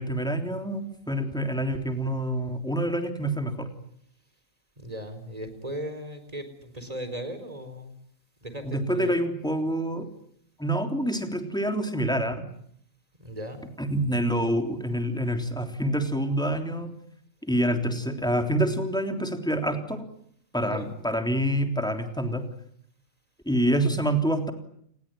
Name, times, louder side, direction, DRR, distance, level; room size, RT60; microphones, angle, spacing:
voice 1, 0.0-3.7 8.6-10.1 10.6-12.5 13.8-16.9 17.4-20.1 20.5-22.5 23.4-24.5, right 1 dB, 5° left, 5 dB, 3.3 m, -27 dB
voice 2, 4.8-7.9 8.4-9.2 13.2-13.6 20.6-20.9, equal, 30° right, 10 dB, 4.4 m, -37 dB
29.5 x 20.0 x 9.1 m, 0.68 s
omnidirectional pair, 1.4 m